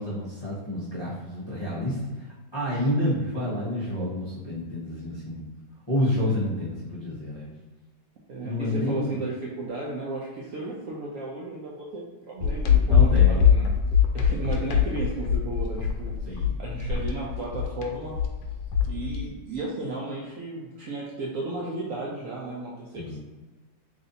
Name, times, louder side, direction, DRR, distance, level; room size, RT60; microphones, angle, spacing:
voice 1, 0.0-2.0 2.5-5.4 5.9-7.5 8.4-9.2 12.8-13.8 16.3-16.6 22.9-23.2, left 1 dB, 45° left, -9 dB, 0.3 m, -29 dB
voice 2, 8.3-13.6 14.1-18.2 18.9-23.2, right 2 dB, 75° right, -4 dB, 0.7 m, -34 dB
sound 1, 12.4-19.2, left 7 dB, 75° left, 1.2 m, -22 dB
3.2 x 2.7 x 3.9 m, 1.3 s
omnidirectional pair, 2.0 m